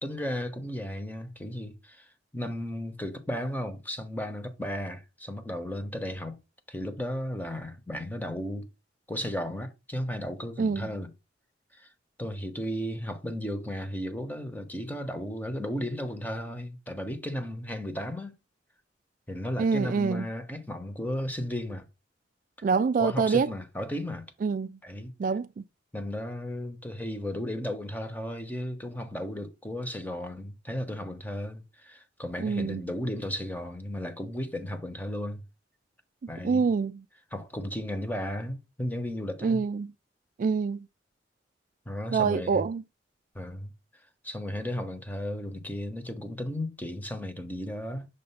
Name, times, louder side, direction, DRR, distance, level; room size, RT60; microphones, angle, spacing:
voice 1, 0.0-6.4 6.7-8.7 9.1-11.1 11.7-11.9 12.2-18.3 19.3-21.9 23.0-24.3 24.8-25.1 25.9-35.4 36.3-36.7 37.3-39.6 41.9-42.6 43.3-43.7 44.2-48.1, left 1 dB, 10° left, 0.9 m, -34 dB
voice 2, 10.6-10.9 19.6-20.2 22.6-23.5 24.4-24.8 25.2-25.6 32.4-32.8 36.4-37.0 39.4-39.9 40.4-40.8 42.1-42.8, right 5 dB, 50° right, 0.3 m, -26 dB
6.6 x 2.6 x 5.4 m
head